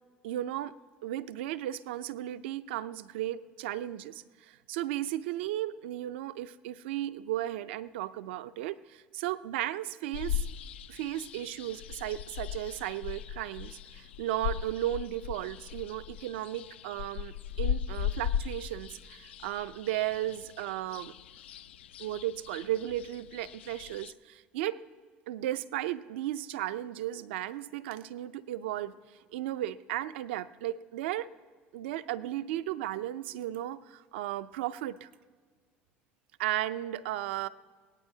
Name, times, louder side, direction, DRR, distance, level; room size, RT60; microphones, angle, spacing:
voice 1, 0.2-0.7 1.0-10.5 10.9-21.1 22.0-24.8 25.3-29.0 29.3-31.3 31.7-35.1 36.4-37.5, right 13 dB, 80° right, 14 dB, 0.5 m, -35 dB
sound 1, 10.1-24.1, left 9 dB, 90° left, 0.4 m, -38 dB
22.0 x 18.0 x 2.8 m, 1.5 s
hypercardioid pair, 70°, 6 cm